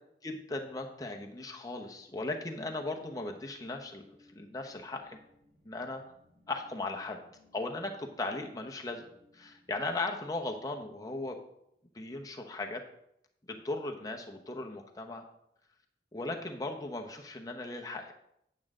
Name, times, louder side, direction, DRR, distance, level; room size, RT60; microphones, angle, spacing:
voice 1, 0.2-4.0 4.3-5.2 5.6-6.0 6.5-7.2 7.5-9.0 9.3-11.4 11.9-12.8 13.5-15.2 16.1-18.1, left 2 dB, 20° left, 2 dB, 0.9 m, -37 dB
sound 1, 3.1-11.8, left 1 dB, 80° right, 3.9 m, -66 dB
8.7 x 8.7 x 3.7 m, 0.76 s
head